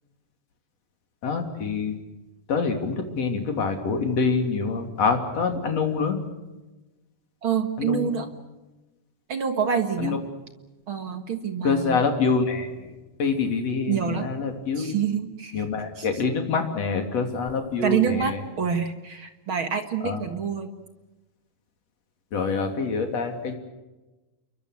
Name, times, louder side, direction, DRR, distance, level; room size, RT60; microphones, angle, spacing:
voice 1, 1.2-2.0 2.5-6.2 7.8-8.1 10.0-10.2 11.6-12.9 13.2-15.0 15.5-18.4 20.0-20.2 22.3-23.5, left 4 dB, 45° left, 4 dB, 3.9 m, -26 dB
voice 2, 7.4-8.3 9.3-10.2 10.9-12.0 13.9-14.3 14.8-16.1 17.8-20.7, right 7 dB, 50° right, 7 dB, 1.7 m, -27 dB
29.0 x 23.5 x 6.5 m, 1.1 s
omnidirectional pair, 4.4 m